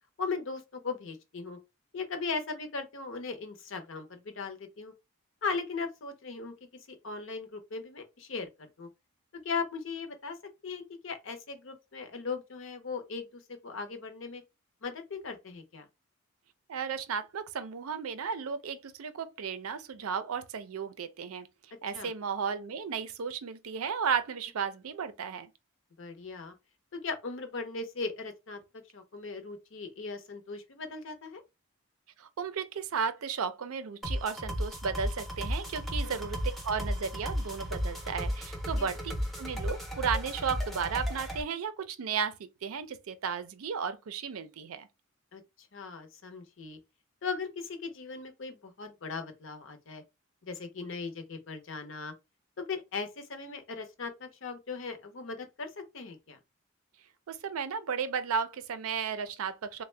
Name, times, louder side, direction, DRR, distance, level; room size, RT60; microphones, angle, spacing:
voice 1, 0.2-1.6 1.9-4.9 5.4-6.5 6.9-8.5 8.8-8.9 9.3-10.4 10.6-14.4 14.8-15.9 21.9-22.1 26.0-26.5 26.9-28.6 28.9-31.4 36.0-36.2 38.7-38.9 45.3-45.4 45.7-46.8 47.2-50.0 50.4-52.1 52.6-56.4, left 4 dB, 60° left, 0.7 m, -38 dB
voice 2, 16.7-21.5 21.8-25.5 32.2-44.9 57.3-59.8, right 6 dB, 85° right, 0.5 m, -34 dB
sound 1, 34.0-41.4, equal, ahead, 0.5 m, -34 dB
3.5 x 2.1 x 3.2 m
head